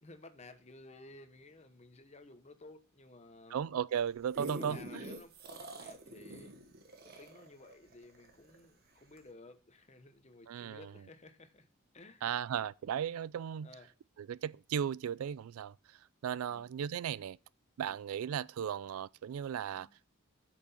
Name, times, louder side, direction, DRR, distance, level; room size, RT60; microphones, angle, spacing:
voice 1, 0.0-3.6 4.6-6.6 7.0-11.7 11.9-12.5 13.6-13.9 16.4-16.7 17.8-18.1 19.7-19.9, left 2 dB, 30° left, 1.1 m, -55 dB
voice 2, 3.5-4.8 10.5-10.9 12.2-13.7 14.3-15.7 16.2-17.4 17.8-19.9, right 8 dB, 85° right, 0.3 m, -36 dB
sound 1, 4.0-8.6 9.2-9.3, right 2 dB, 45° right, 1.3 m, -45 dB
8.4 x 6.1 x 5.7 m
head